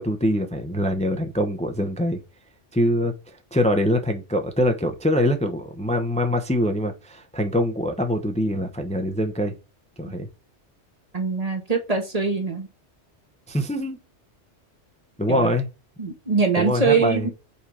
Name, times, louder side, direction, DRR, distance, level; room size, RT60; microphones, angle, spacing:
voice 1, 0.0-2.2 2.7-9.5 10.0-10.3 13.5-14.0 15.2-15.7 16.6-17.3, equal, 5° left, 0.8 m, -24 dB
voice 2, 11.1-12.7 15.3-15.5 16.0-17.3, right 4 dB, 35° right, 1.4 m, -23 dB
5.6 x 4.6 x 4.9 m
omnidirectional pair, 1.2 m